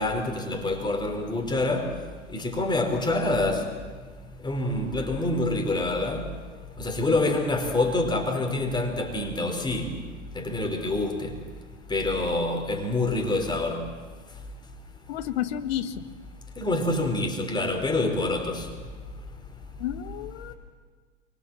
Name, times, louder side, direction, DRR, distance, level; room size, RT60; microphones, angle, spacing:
voice 1, 0.0-1.9 2.3-3.6 4.4-6.2 6.8-9.9 10.3-11.3 11.9-13.8 16.6-18.6, left 2 dB, 10° left, 4.6 m, -26 dB
voice 2, 15.1-16.0 19.8-20.5, left 11 dB, 60° left, 1.7 m, -31 dB
25.0 x 24.5 x 7.7 m
figure-of-eight pair, 85°, 35 cm